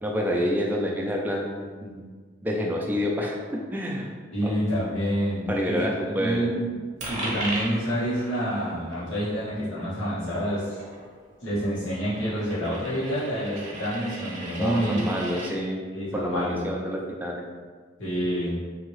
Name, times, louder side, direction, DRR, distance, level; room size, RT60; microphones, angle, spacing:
voice 1, 0.0-2.0 2.4-4.1 4.4-4.5 5.5-6.5 14.6-15.8 16.1-17.4, equal, 10° right, -1 dB, 0.3 m, -28 dB
voice 2, 4.3-5.7 6.1-6.7 7.1-10.8 11.4-15.0 15.4-15.5 15.9-16.6 18.0-18.6, equal, 85° left, -10 dB, 1.3 m, -28 dB
Coin (dropping), 7.0-15.5, right 1 dB, 40° right, 0.8 m, -38 dB
2.8 x 2.7 x 3.1 m, 1.5 s
head